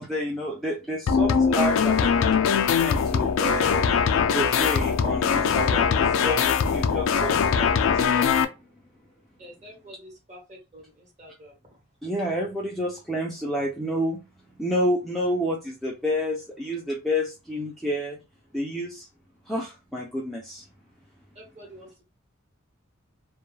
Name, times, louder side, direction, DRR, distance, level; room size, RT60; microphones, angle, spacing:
voice 1, 0.0-2.5 2.8-3.9 4.3-8.5 12.0-14.3 14.6-18.2 18.5-19.1 19.5-20.6, equal, ahead, 0.4 m, -29 dB
sound 1, 1.1-8.4, left 6 dB, 75° left, 0.3 m, -22 dB
voice 2, 9.4-11.8 21.3-22.0, equal, 35° right, 1.0 m, -48 dB
2.2 x 2.1 x 3.1 m
head